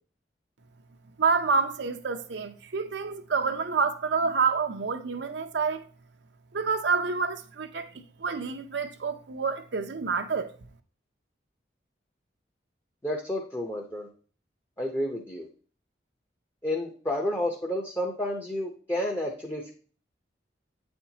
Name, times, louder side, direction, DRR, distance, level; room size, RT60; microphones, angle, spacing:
voice 1, 1.2-5.8 6.5-7.9 8.2-10.5, right 5 dB, 75° right, 0.6 m, -28 dB
voice 2, 13.0-14.1 14.8-15.5 16.6-19.7, left 1 dB, 15° left, 0.6 m, -30 dB
8.5 x 4.4 x 2.8 m
head